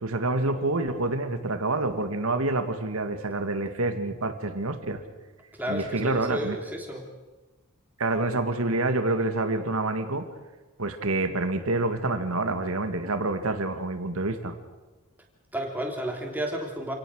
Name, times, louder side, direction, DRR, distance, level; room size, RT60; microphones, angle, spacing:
voice 1, 0.0-5.0 5.7-6.6 8.0-10.3 10.8-14.5, right 2 dB, 75° right, 8 dB, 2.0 m, -27 dB
voice 2, 5.5-7.1 15.5-16.9, equal, 10° right, 1 dB, 3.3 m, -32 dB
27.5 x 18.0 x 6.4 m, 1.2 s
head